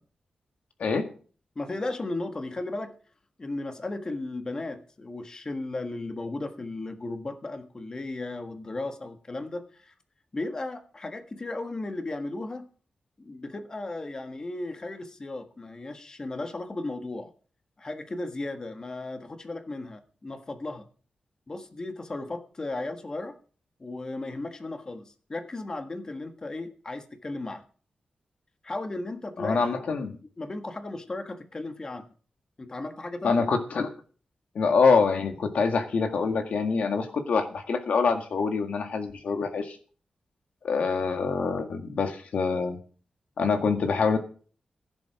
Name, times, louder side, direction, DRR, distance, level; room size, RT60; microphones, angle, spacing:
voice 1, 1.5-3.0 3.4-9.9 10.3-12.7 13.2-17.3 17.8-20.9 21.5-23.3 23.8-27.6 28.6-29.8 30.4-32.0 32.6-33.5, left 2 dB, 30° left, 6 dB, 1.6 m, -35 dB
voice 2, 29.4-30.2 33.2-33.9 34.6-39.8 40.6-42.8 43.4-44.2, left 5 dB, 80° left, 6 dB, 1.8 m, -25 dB
16.0 x 7.8 x 5.9 m, 0.41 s
wide cardioid pair, 135°, 2 cm